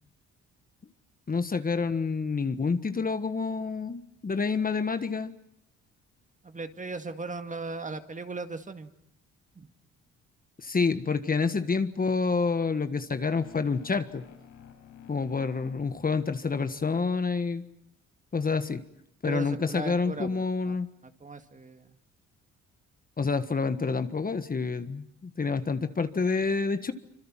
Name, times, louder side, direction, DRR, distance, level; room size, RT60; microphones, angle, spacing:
voice 1, 1.3-5.3 10.6-14.2 15.1-17.6 18.3-18.8 19.2-20.9 23.2-26.9, left 4 dB, 30° left, 10 dB, 1.5 m, -28 dB
voice 2, 6.4-8.9 9.6-9.7 19.2-20.8 21.0-22.0, right 3 dB, 25° right, 9 dB, 2.1 m, -38 dB
sound 1, 13.2-17.3, left 9 dB, 85° left, 6.4 m, -52 dB
26.0 x 25.5 x 7.5 m, 0.76 s
cardioid pair, 90°, 30 cm